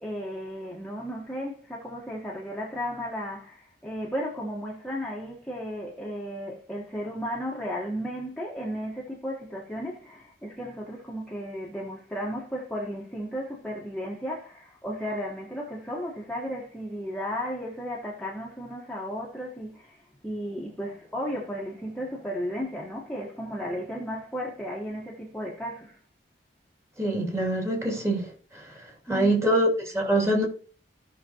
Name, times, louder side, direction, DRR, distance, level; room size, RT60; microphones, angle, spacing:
voice 1, 0.0-26.0 29.1-29.5, equal, 5° left, 1.4 m, -34 dB
voice 2, 27.0-28.7 29.1-30.5, right 1 dB, 15° right, 2.7 m, -25 dB
16.0 x 5.9 x 2.9 m
head